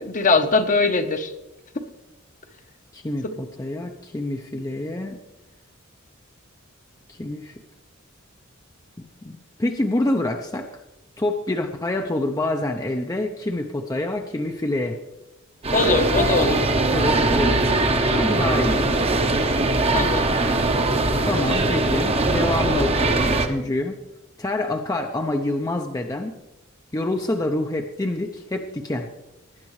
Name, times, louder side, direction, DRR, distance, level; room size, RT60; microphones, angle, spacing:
voice 1, 0.0-1.3 15.7-16.6 19.9-20.3, left 3 dB, 40° left, 7 dB, 0.9 m, -21 dB
voice 2, 2.9-5.2 7.1-7.6 9.0-10.7 11.2-15.0 16.5-16.6 16.9-17.6 18.1-19.2 21.3-24.0 24.4-26.4 26.9-29.1, left 1 dB, 15° left, 4 dB, 0.6 m, -26 dB
sound 1, 15.6-23.5, right 2 dB, 30° right, 0.9 m, -21 dB
19.0 x 10.0 x 3.2 m, 0.97 s
head